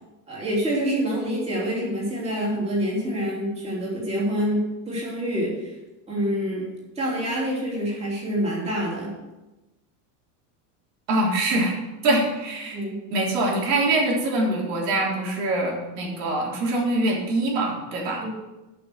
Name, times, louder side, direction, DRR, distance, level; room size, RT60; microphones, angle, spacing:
voice 1, 0.3-5.7 6.1-6.7 6.9-9.1 12.7-13.0 18.2-18.4, equal, 15° right, -5 dB, 3.1 m, -26 dB
voice 2, 11.1-11.8 12.0-12.8 13.1-18.2, right 2 dB, 90° right, -2 dB, 3.7 m, -24 dB
13.0 x 6.0 x 6.5 m, 1.1 s
cardioid pair, 180°, 47 cm